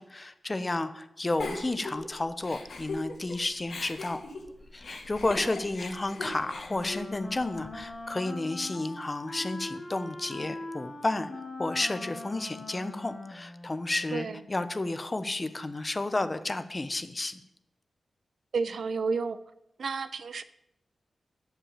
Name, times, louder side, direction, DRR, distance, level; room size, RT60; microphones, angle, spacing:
voice 1, 0.0-4.2 4.7-11.3 11.6-17.4, left 2 dB, 25° left, 11 dB, 0.8 m, -32 dB
Giggle, 1.4-3.4 3.7-7.9, left 2 dB, 65° left, 2.3 m, -39 dB
Wind instrument woodwind instrument, 6.1-14.3, left 2 dB, 40° left, 2.1 m, -42 dB
voice 2, 18.5-19.4 19.8-20.4, right 4 dB, 70° right, 13 dB, 0.6 m, -31 dB
11.5 x 5.8 x 8.8 m, 0.84 s
wide cardioid pair, 120°, 0 cm